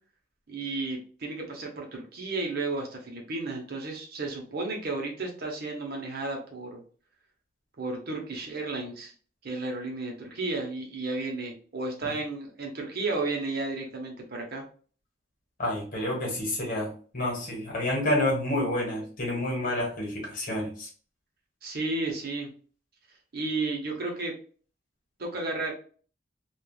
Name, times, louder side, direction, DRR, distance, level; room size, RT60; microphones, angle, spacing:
voice 1, 0.5-6.8 7.8-9.1 9.4-14.6 21.6-22.5 23.3-24.4 25.2-25.7, right 3 dB, 50° right, 1 dB, 0.8 m, -33 dB
voice 2, 15.6-20.9, left 1 dB, 45° left, -2 dB, 1.2 m, -29 dB
3.3 x 2.4 x 2.3 m, 0.42 s
head